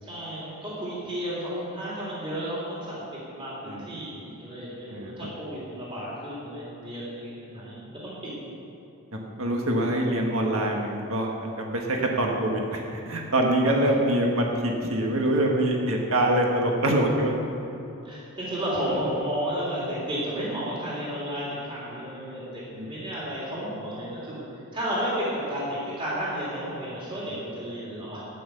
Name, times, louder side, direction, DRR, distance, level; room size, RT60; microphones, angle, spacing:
voice 1, 0.0-8.1 13.7-13.9 18.0-24.4 24.7-28.2, equal, 25° right, -8 dB, 3.5 m, -32 dB
voice 2, 4.9-5.3 9.1-11.3 11.6-17.3 22.8-22.9, right 1 dB, 70° right, 0 dB, 1.6 m, -25 dB
12.5 x 9.8 x 6.6 m, 2.9 s
head